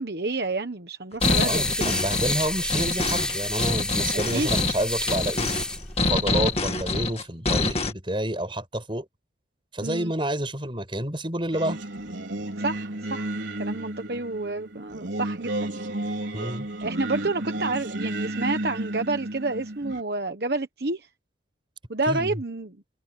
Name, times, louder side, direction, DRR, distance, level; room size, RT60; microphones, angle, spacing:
voice 1, 0.0-2.0 4.3-4.5 9.8-10.1 12.6-13.3 13.6-16.1 16.8-21.1 21.9-22.7, right 3 dB, 55° right, 1.2 m, -29 dB
sound 1, 1.2-7.9, left 3 dB, 35° left, 2.1 m, -26 dB
sound 2, 1.2-6.6, left 1 dB, 5° left, 3.7 m, -29 dB
voice 2, 1.4-5.5 6.1-9.1 9.7-11.8 16.3-16.7 22.1-22.4, right 1 dB, 25° right, 7.3 m, -29 dB
Singing, 11.5-20.0, right 1 dB, 80° right, 4.6 m, -32 dB
open air
head